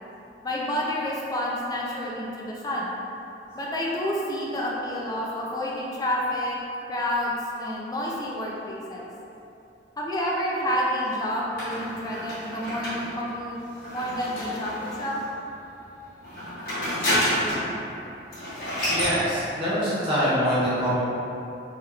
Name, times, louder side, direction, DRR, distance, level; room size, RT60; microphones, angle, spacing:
voice 1, 0.4-2.9 3.6-6.6 6.9-9.1 10.0-13.6 13.9-15.2, equal, 20° left, -4 dB, 0.4 m, -29 dB
sound 1, 11.6-15.2 16.2-17.7 18.0-18.1 18.3-19.2, equal, 55° left, 1.1 m, -29 dB
voice 2, 18.9-21.0, equal, 30° right, -11 dB, 0.6 m, -24 dB
3.2 x 2.9 x 2.3 m, 2.9 s
head